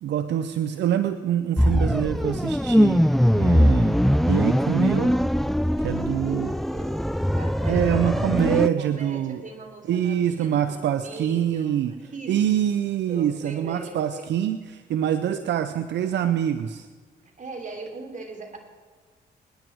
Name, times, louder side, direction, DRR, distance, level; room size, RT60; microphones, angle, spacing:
voice 1, 0.0-3.0 3.3-4.0 4.3-5.2 5.8-6.5 7.7-9.4 9.9-11.9 12.3-16.9, right 10 dB, 80° right, 10 dB, 0.7 m, -25 dB
sound 1, 1.6-8.7, equal, ahead, 0.4 m, -21 dB
voice 2, 6.2-12.4 13.1-14.3 17.2-18.6, right 3 dB, 45° right, 4 dB, 3.4 m, -40 dB
24.5 x 10.5 x 4.7 m, 1.5 s
cardioid pair, 65°, 18 cm